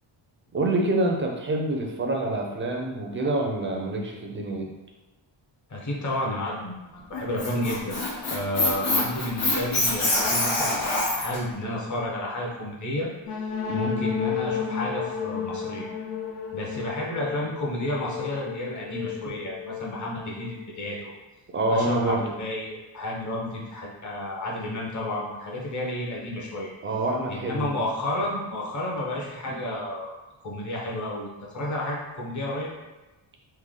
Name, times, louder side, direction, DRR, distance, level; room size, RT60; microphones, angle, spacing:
voice 1, 0.5-4.7 7.5-7.7 13.7-14.0 21.5-22.3 26.8-27.7 29.5-29.6, right 2 dB, 25° right, 0 dB, 0.4 m, -27 dB
voice 2, 5.7-8.0 8.3-13.1 13.7-15.9 16.5-21.1 21.7-26.7 27.3-30.1 30.4-31.3 31.5-32.7, left 1 dB, 40° left, -3 dB, 0.8 m, -31 dB
Squeak, 7.1-11.4, left 2 dB, 75° left, 1.3 m, -25 dB
sound 1, 13.2-20.9, left 7 dB, 90° left, 0.6 m, -33 dB
3.3 x 2.1 x 3.6 m, 1.1 s
wide cardioid pair, 130°, 47 cm